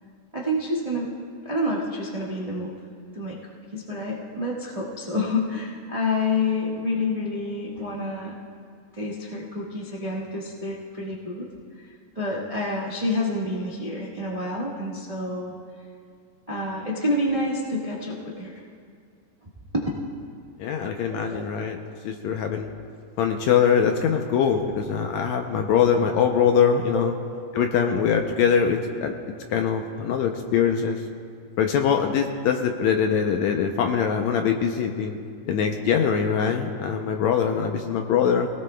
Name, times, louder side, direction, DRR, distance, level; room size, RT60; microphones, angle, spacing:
voice 1, 0.3-1.1 1.4-2.7 3.1-3.4 3.7-8.3 8.9-11.5 12.1-15.5 16.5-18.6 19.7-19.9 21.1-21.4 26.9-27.0 27.3-27.6, left 2 dB, 50° right, -4 dB, 0.4 m, -28 dB
voice 2, 20.6-21.8 22.0-22.7 23.2-27.1 27.5-31.0 31.6-35.2 35.5-38.5, left 7 dB, 75° left, 4 dB, 1.7 m, -23 dB
24.0 x 18.0 x 2.3 m, 2.2 s
omnidirectional pair, 3.7 m